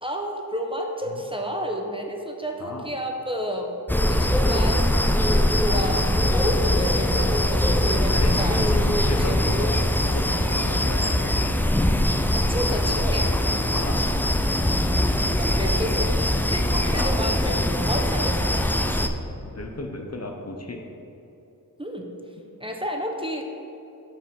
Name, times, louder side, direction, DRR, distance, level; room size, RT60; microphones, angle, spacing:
voice 1, 0.0-3.7 4.1-9.5 12.3-13.3 15.4-18.9 21.8-22.1 22.6-23.6, equal, 15° right, 1 dB, 0.8 m, -31 dB
sound 1, 3.9-19.1, left 1 dB, 5° left, 0.4 m, -22 dB
voice 2, 8.1-11.3 13.7-14.1 16.9-17.2 19.4-20.8, left 2 dB, 45° left, 3 dB, 0.8 m, -33 dB
5.7 x 5.0 x 6.3 m, 2.9 s
wide cardioid pair, 55°, 37 cm